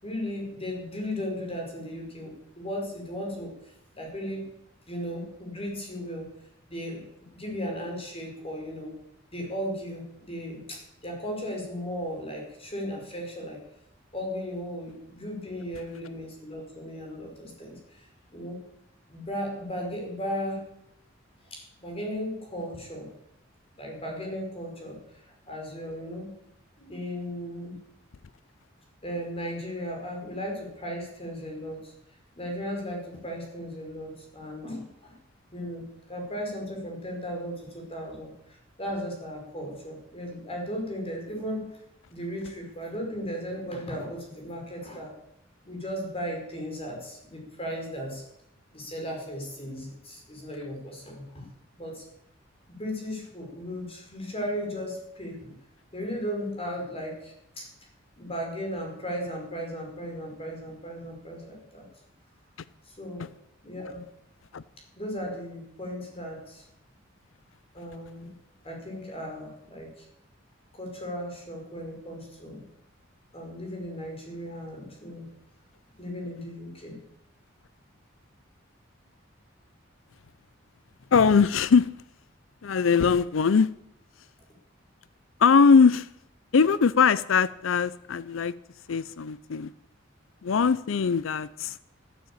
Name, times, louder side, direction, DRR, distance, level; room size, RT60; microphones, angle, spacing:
voice 1, 0.0-3.5 3.9-4.5 4.9-6.3 6.7-7.1 7.3-8.9 9.3-13.6 14.1-18.6 19.1-20.6 21.5-23.1 23.8-26.3 26.8-27.8 29.0-31.9 32.4-35.2 35.5-41.7 42.1-45.1 45.6-48.2 48.7-51.5 51.8-52.0 52.7-55.5 55.9-57.7 58.2-61.8 62.9-63.2 63.6-64.0 65.0-66.6 67.7-68.3 68.6-70.1 70.7-72.6 73.3-75.3 76.0-77.0, equal, 30° left, 1 dB, 5.3 m, -36 dB
voice 2, 81.1-81.9 82.6-83.7 85.4-86.1 86.5-88.5 88.9-89.7 90.4-91.8, left 5 dB, 80° left, 18 dB, 0.5 m, -21 dB
14.5 x 11.0 x 8.7 m, 0.78 s
head